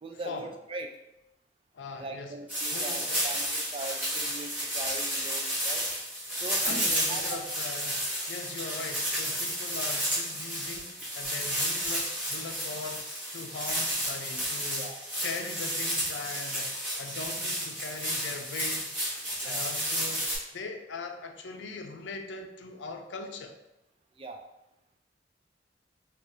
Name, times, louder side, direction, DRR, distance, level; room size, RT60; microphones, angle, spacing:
voice 1, 0.0-1.0 2.0-5.9 6.4-7.4 14.8-15.0 19.4-19.7 24.2-24.4, right 2 dB, 30° right, 4 dB, 0.3 m, -40 dB
voice 2, 1.7-2.3 2.7-3.4 6.6-13.0 13.3-14.9 15.2-16.7 17.0-19.0 19.4-20.3 20.5-23.6, left 4 dB, 85° left, 5 dB, 0.5 m, -40 dB
sound 1, 2.5-20.4, equal, 10° right, 1.1 m, -32 dB
4.7 x 2.4 x 2.7 m, 0.88 s
head